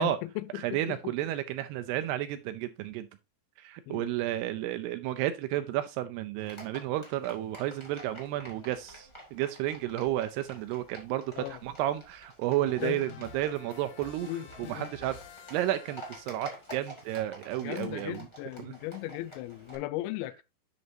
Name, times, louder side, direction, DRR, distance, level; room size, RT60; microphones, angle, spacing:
voice 1, 0.0-1.1 3.9-4.1 11.4-11.6 12.8-13.0 14.2-14.9 17.6-20.4, left 16 dB, 90° left, 3.0 m, -37 dB
voice 2, 0.6-3.1 3.6-14.3 14.6-15.2 15.5-18.3 18.6-18.7, right 13 dB, 80° right, 2.4 m, -32 dB
Livestock farm animals working animals, 6.4-19.8, equal, 10° left, 1.7 m, -49 dB
sound 1, 12.8-16.7, left 6 dB, 70° left, 1.9 m, -49 dB
11.0 x 6.2 x 2.7 m
omnidirectional pair, 5.2 m